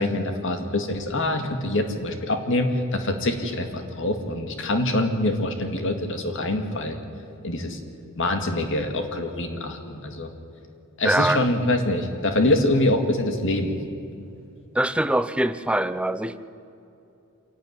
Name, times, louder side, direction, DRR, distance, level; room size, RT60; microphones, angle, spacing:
voice 1, 0.0-7.0 7.4-7.8 8.2-10.3 11.0-13.8, left 1 dB, 60° left, 5 dB, 2.1 m, -25 dB
voice 2, 11.0-11.4 14.7-16.4, right 1 dB, 5° right, 12 dB, 0.5 m, -23 dB
26.5 x 12.0 x 9.5 m, 2.7 s
head